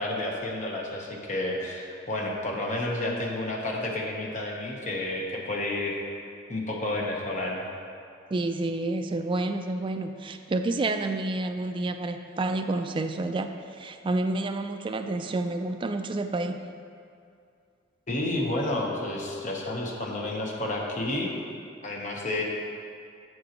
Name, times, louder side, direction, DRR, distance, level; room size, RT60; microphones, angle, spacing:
voice 1, 0.0-6.0 6.5-7.6 18.1-21.3 21.8-22.4, left 1 dB, 40° left, -1 dB, 0.9 m, -30 dB
voice 2, 8.3-13.5 13.8-16.6, right 2 dB, 25° right, 6 dB, 0.3 m, -29 dB
7.6 x 7.0 x 2.9 m, 2.4 s
head